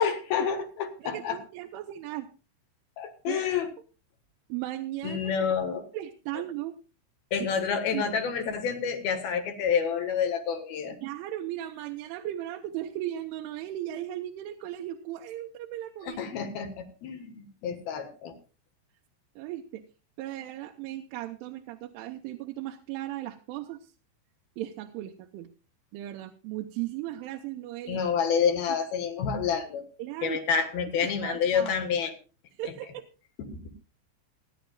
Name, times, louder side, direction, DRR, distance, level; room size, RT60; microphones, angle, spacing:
voice 1, 0.0-1.4 3.0-3.7 5.0-5.9 7.3-11.0 16.0-18.3 27.9-29.9 30.2-32.1 32.6-32.7 33.5-33.7, left 7 dB, 65° left, 7 dB, 3.0 m, -28 dB
voice 2, 1.0-2.3 3.3-3.4 4.5-5.5 5.9-6.8 7.4-7.5 7.9-8.0 11.0-16.2 19.4-19.8 20.2-23.9 24.6-25.5 25.9-28.0 30.0-30.4 31.0-31.7 32.6-33.1, right 13 dB, 85° right, 3 dB, 3.3 m, -36 dB
27.5 x 10.5 x 2.4 m, 0.34 s
omnidirectional pair, 5.5 m